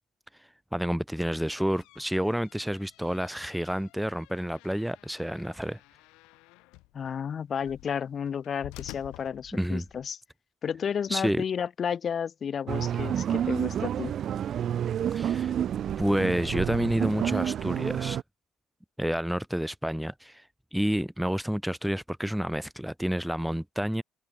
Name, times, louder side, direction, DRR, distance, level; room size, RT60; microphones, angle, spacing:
voice 1, 0.7-5.8 9.5-9.8 11.1-11.4 15.1-15.5 16.0-18.2 19.0-20.5 20.7-24.0, equal, ahead, 0.5 m, -29 dB
sound 1, 1.4-10.1, left 23 dB, 85° left, 5.8 m, -51 dB
voice 2, 6.9-10.2 10.6-14.2, left 7 dB, 45° left, 1.2 m, -32 dB
sound 2, 12.7-18.2, right 9 dB, 55° right, 0.3 m, -29 dB
open air
supercardioid pair, 85°, 0 cm